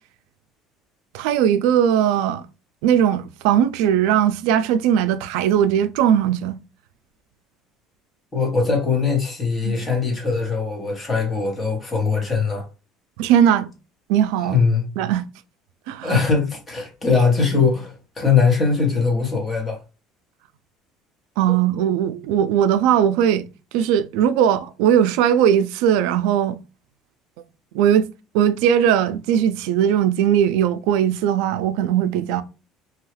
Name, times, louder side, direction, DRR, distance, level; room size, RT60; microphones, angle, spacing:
voice 1, 1.1-2.4 2.8-6.6 9.6-9.8 13.2-13.7 14.1-14.6 15.0-15.3 15.9-16.2 21.4-23.5 23.7-26.6 27.7-28.1 28.3-32.4, right 9 dB, 80° right, 0.3 m, -19 dB
voice 2, 8.3-12.7 14.5-14.8 16.0-19.8, left 5 dB, 20° left, 1.0 m, -21 dB
2.8 x 2.3 x 3.2 m
cardioid pair, 160°, 0 cm